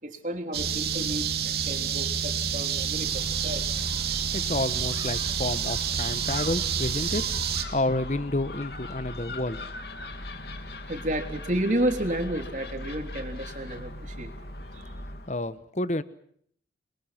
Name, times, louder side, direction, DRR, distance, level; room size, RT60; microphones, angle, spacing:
voice 1, 0.0-1.3 1.6-3.9 10.9-14.3 14.7-14.8, right 1 dB, 45° right, 5 dB, 3.4 m, -31 dB
sound 1, 0.5-7.6, right 7 dB, 60° right, 2.9 m, -29 dB
Gull seagull, 2.9-15.3, left 1 dB, 65° left, 2.7 m, -39 dB
voice 2, 4.3-9.6 15.3-16.0, left 2 dB, 40° left, 14 dB, 1.2 m, -30 dB
28.5 x 23.0 x 6.0 m, 0.65 s
head